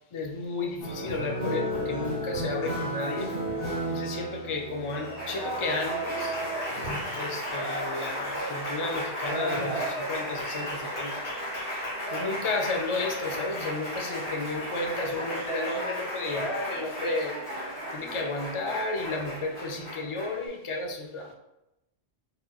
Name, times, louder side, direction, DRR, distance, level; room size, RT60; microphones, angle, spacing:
voice 1, 0.1-3.4 3.9-6.4 7.2-11.3 12.1-17.4 17.9-21.3, left 3 dB, 55° left, 3 dB, 0.3 m, -33 dB
Applause, 0.8-20.5, equal, 85° left, 1.9 m, -33 dB
4.2 x 3.6 x 2.3 m, 0.90 s
omnidirectional pair, 1.1 m